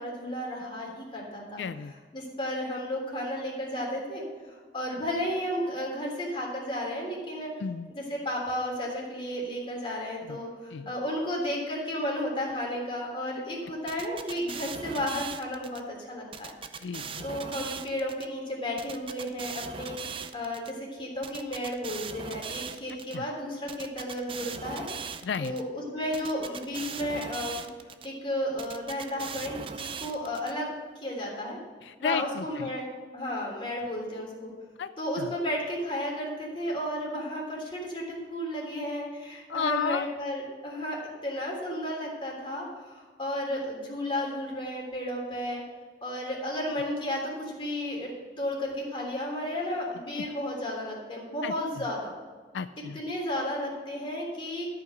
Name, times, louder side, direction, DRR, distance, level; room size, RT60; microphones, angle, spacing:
voice 1, 0.0-1.6 2.1-7.5 7.9-16.5 17.2-24.9 25.4-25.6 25.9-27.7 28.0-30.7 31.0-31.6 32.0-32.9 33.1-34.5 35.0-45.6 46.0-48.1 48.4-52.1 52.9-54.7, left 1 dB, 30° left, -2 dB, 3.5 m, -33 dB
voice 2, 1.6-1.9 7.6-7.9 10.3-10.4 10.7-10.9 16.8-17.3 23.1-23.2 25.2-25.5 31.8-32.7 34.8-34.9 35.2-35.3 39.5-40.0 50.1-50.2 51.4-51.8 52.5-53.0, left 6 dB, 85° left, 12 dB, 0.4 m, -33 dB
sound 1, 13.9-15.8 16.3-18.2 18.8-20.7 21.2-23.2 23.7-25.6 26.1-28.1 28.6-30.5, right 6 dB, 30° right, 0.6 m, -39 dB
13.0 x 5.7 x 6.7 m, 1.5 s
head